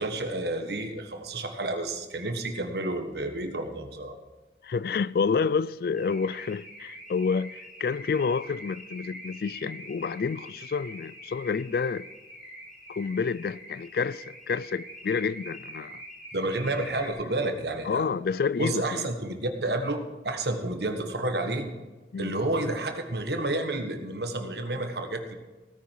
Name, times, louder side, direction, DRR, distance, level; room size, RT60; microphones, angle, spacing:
voice 1, 0.0-4.2 16.3-18.1 18.6-21.7 22.2-25.3, right 2 dB, 70° right, 1.5 m, -30 dB
voice 2, 4.6-12.1 12.9-16.0 17.9-19.1 22.1-22.3, left 5 dB, 55° left, 0.3 m, -29 dB
Car / Alarm, 6.0-17.1, equal, ahead, 3.7 m, -45 dB
17.0 x 9.5 x 4.7 m
head